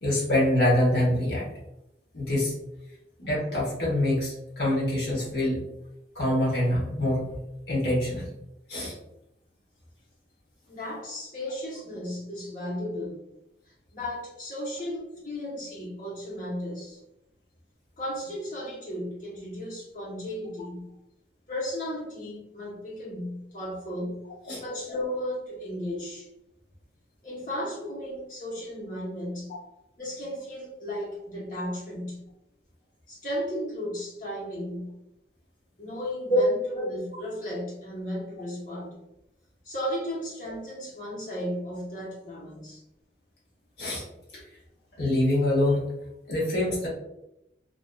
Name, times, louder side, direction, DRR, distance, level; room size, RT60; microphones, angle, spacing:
voice 1, 0.0-1.5 2.1-2.5 3.2-5.6 6.1-7.3 7.7-8.3 8.7-8.9 24.5-24.6 36.3-36.4 43.8-44.0 44.3-44.4 45.0-45.9 46.3-46.9, left 1 dB, 70° left, -5 dB, 0.9 m, -25 dB
voice 2, 10.7-13.1 13.9-17.0 18.0-20.9 21.5-24.2 24.6-26.3 27.2-29.5 30.0-32.2 33.1-34.9 35.8-38.9 39.6-42.8, left 1 dB, 45° left, -5 dB, 0.9 m, -35 dB
2.5 x 2.3 x 2.2 m, 0.86 s
head